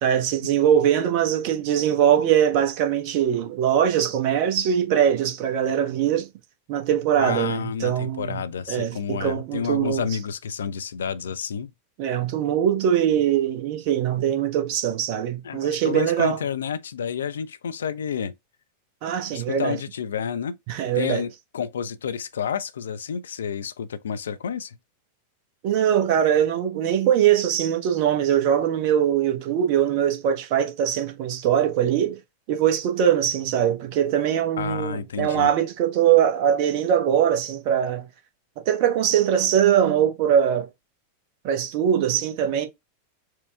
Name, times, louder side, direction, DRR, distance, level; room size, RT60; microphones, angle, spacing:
voice 1, 0.0-6.3 6.7-8.4 8.7-10.0 12.0-16.4 19.0-19.8 20.7-21.2 25.6-32.2 32.5-38.1 38.6-40.7 41.4-42.7, right 9 dB, 45° right, 1.0 m, -22 dB
voice 2, 7.2-11.7 15.4-18.3 19.3-20.6 20.9-24.8 34.6-35.5, left 7 dB, 65° left, 0.4 m, -30 dB
4.4 x 2.2 x 3.4 m
figure-of-eight pair, 90°, 0 cm